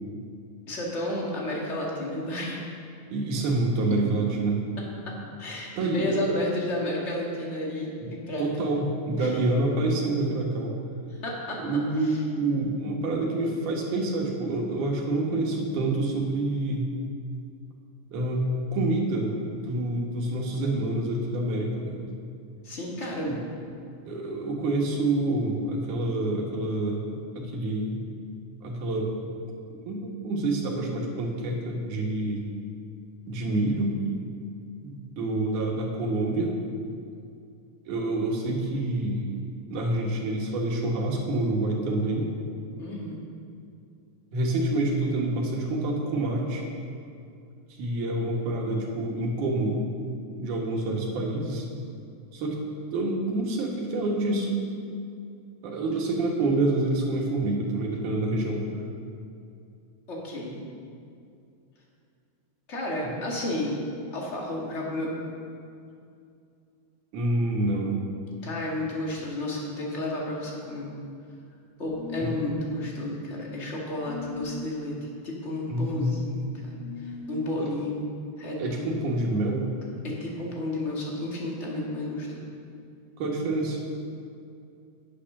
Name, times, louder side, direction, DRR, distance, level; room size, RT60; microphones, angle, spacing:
voice 1, 0.7-2.6 5.1-8.8 9.2-9.3 11.1-11.6 12.0-12.2 22.6-23.3 42.8-43.2 60.1-60.6 62.7-63.8 64.1-65.1 68.4-71.0 71.8-75.0 75.2-78.1 78.4-79.1 80.0-82.4, left 1 dB, 30° left, -3 dB, 1.6 m, -32 dB
voice 2, 3.1-4.6 5.8-6.4 8.0-8.1 8.4-10.7 11.6-16.9 18.1-22.0 23.2-23.4 24.1-27.0 27.4-28.0 28.6-29.1 29.9-32.5 33.3-34.0 34.8-36.5 37.9-39.2 39.7-42.3 44.3-46.6 47.8-49.8 50.4-51.6 52.3-52.6 52.9-54.5 55.6-58.6 63.0-63.1 67.1-68.0 72.2-72.3 75.7-76.3 77.6-77.7 78.6-79.7 83.2-83.8, right 2 dB, 80° right, -1 dB, 3.0 m, -27 dB
sound 1, 71.8-72.5 74.0-74.7 76.8-77.4, left 3 dB, 85° left, 2.3 m, -38 dB
9.9 x 8.8 x 6.0 m, 2.5 s
omnidirectional pair, 3.5 m